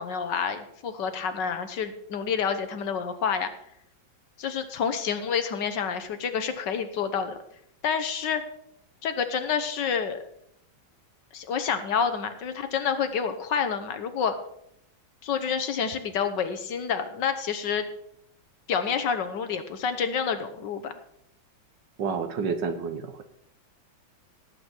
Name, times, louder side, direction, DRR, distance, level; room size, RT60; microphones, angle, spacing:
voice 1, 0.0-3.5 4.4-7.4 7.8-8.4 9.0-10.2 11.3-14.3 15.2-17.9 18.7-20.9, left 6 dB, 65° left, 9 dB, 1.6 m, -28 dB
voice 2, 22.0-23.2, right 5 dB, 70° right, 8 dB, 1.7 m, -29 dB
17.5 x 7.9 x 4.5 m, 0.73 s
omnidirectional pair, 2.1 m